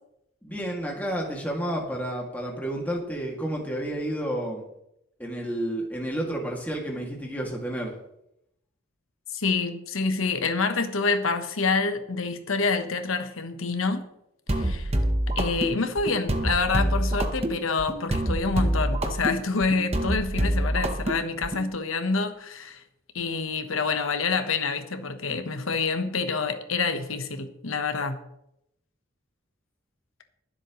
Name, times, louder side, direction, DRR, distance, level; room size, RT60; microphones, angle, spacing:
voice 1, 0.4-4.6 5.2-7.9, right 1 dB, 10° left, -1 dB, 2.4 m, -30 dB
voice 2, 9.3-14.0 14.5-14.9 15.3-22.8 23.1-28.2, left 4 dB, 85° left, 8 dB, 1.2 m, -27 dB
sound 1, 14.5-21.7, right 1 dB, 30° right, 1.0 m, -26 dB
22.5 x 7.6 x 3.2 m, 0.81 s
head